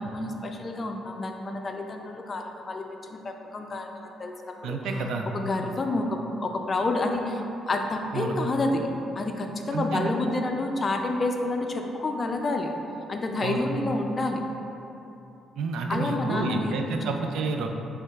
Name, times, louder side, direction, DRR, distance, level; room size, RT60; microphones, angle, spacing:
voice 1, 0.0-4.8 5.3-8.9 9.2-12.7 13.1-14.4 15.9-17.1, left 2 dB, 35° left, 3 dB, 0.4 m, -29 dB
voice 2, 4.6-5.3 8.1-8.3 9.7-10.1 13.4-13.6 15.6-17.7, right 4 dB, 85° right, 3 dB, 0.4 m, -29 dB
6.1 x 3.3 x 2.4 m, 2.9 s
cardioid pair, 90°, 0 cm